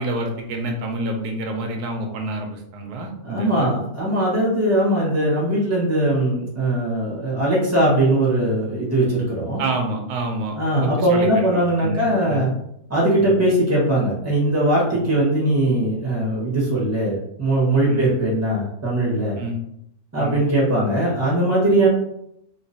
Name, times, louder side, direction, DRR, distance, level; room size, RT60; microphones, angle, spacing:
voice 1, 0.0-3.7 9.6-12.4 13.2-13.3 17.9-18.1 19.4-19.6 20.2-20.4, right 2 dB, 90° right, 3 dB, 1.2 m, -28 dB
voice 2, 3.2-9.6 10.5-12.5 12.9-19.4 20.1-21.9, right 1 dB, 10° right, -5 dB, 1.2 m, -20 dB
3.7 x 2.9 x 2.7 m, 0.74 s
omnidirectional pair, 1.6 m